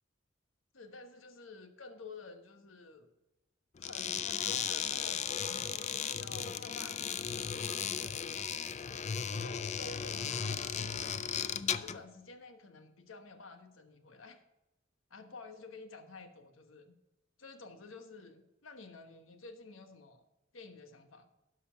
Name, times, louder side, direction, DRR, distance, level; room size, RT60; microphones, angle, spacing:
voice 1, 0.7-3.1 3.8-8.4 9.2-14.4 15.1-16.9 17.4-20.2 20.5-21.3, left 3 dB, 85° left, 7 dB, 1.2 m, -51 dB
sound 1, 3.8-12.0, left 7 dB, 35° left, 0.4 m, -36 dB
12.5 x 5.6 x 5.6 m, 0.97 s
head